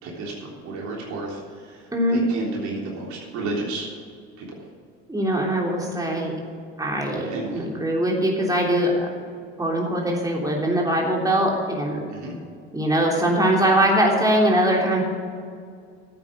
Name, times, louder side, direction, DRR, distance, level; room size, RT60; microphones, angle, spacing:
voice 1, 0.0-3.9 4.4-4.5 7.2-7.6 12.1-12.3, right 2 dB, 65° right, -2 dB, 3.5 m, -32 dB
voice 2, 5.1-6.3 6.8-9.1 9.6-12.0 12.7-15.0, right 1 dB, 10° right, -2 dB, 3.3 m, -22 dB
11.5 x 8.9 x 6.3 m, 2.2 s
hypercardioid pair, 65°, 31 cm